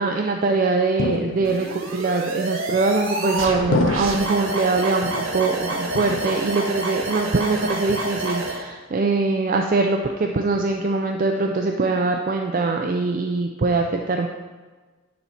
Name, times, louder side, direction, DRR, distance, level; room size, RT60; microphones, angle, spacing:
voice 1, 0.0-14.3, right 3 dB, 40° right, 3 dB, 0.4 m, -22 dB
sound 1, 1.0-1.8 2.7-3.2 3.7-4.5 5.0-5.6 5.9-6.7 7.0-7.5 7.9-8.5, left 4 dB, 60° left, 0.3 m, -30 dB
sound 2, 1.4-8.6, right 2 dB, 75° right, 1.3 m, -28 dB
9.5 x 4.1 x 5.7 m, 1.3 s
head